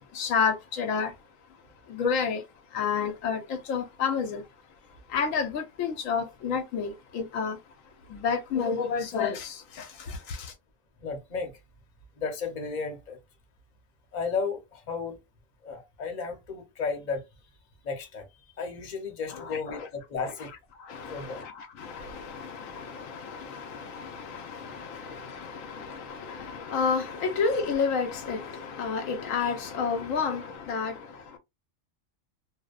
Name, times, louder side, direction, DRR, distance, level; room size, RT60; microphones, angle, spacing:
voice 1, 0.1-1.1 1.9-2.4 2.7-4.4 5.1-7.6 8.1-10.5 19.3-19.9 20.8-31.4, left 5 dB, 80° left, 1.0 m, -30 dB
voice 2, 11.0-11.6 12.2-13.2 14.1-15.2 15.6-17.2 17.8-18.3 18.6-20.5 21.1-21.4, left 5 dB, 40° left, 0.8 m, -33 dB
2.7 x 2.0 x 2.3 m
omnidirectional pair, 1.4 m